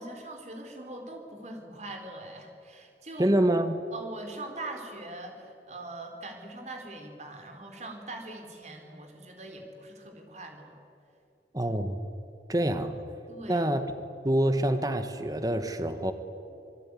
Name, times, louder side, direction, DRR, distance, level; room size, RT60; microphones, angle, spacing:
voice 1, 0.0-3.4 3.9-10.7 13.3-13.7, right 2 dB, 40° right, 4 dB, 4.2 m, -42 dB
voice 2, 3.2-3.8 11.5-12.0 12.5-13.0 13.5-13.9 14.2-16.1, right 1 dB, 20° right, 8 dB, 1.3 m, -26 dB
27.0 x 21.0 x 9.8 m, 2.7 s
head